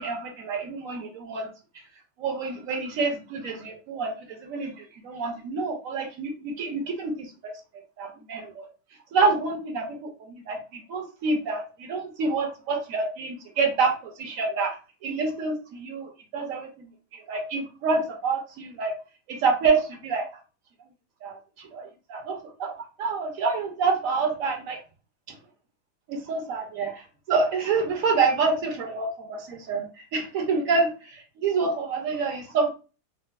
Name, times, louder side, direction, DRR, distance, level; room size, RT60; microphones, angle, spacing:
voice 1, 0.0-1.5 2.2-7.5 8.0-8.7 9.1-14.7 15.0-16.9 17.1-18.9 19.3-20.3 21.2-24.8 26.1-32.7, right 4 dB, 65° right, 3 dB, 0.8 m, -27 dB
4.4 x 2.3 x 2.3 m, 0.33 s
omnidirectional pair, 2.2 m